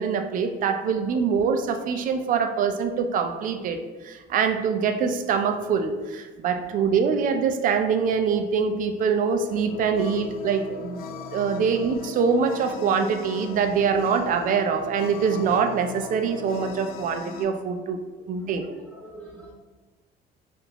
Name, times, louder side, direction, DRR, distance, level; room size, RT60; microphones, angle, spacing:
voice 1, 0.0-11.0 11.3-18.0 18.3-18.7, right 6 dB, 55° right, 6 dB, 0.4 m, -24 dB
voice 2, 6.5-6.8 18.4-19.5, right 1 dB, 10° left, -4 dB, 0.8 m, -47 dB
sound 1, 9.5-17.4, left 4 dB, 60° left, 0.4 m, -39 dB
3.5 x 2.4 x 2.9 m, 1.3 s
cardioid pair, 110°, 17 cm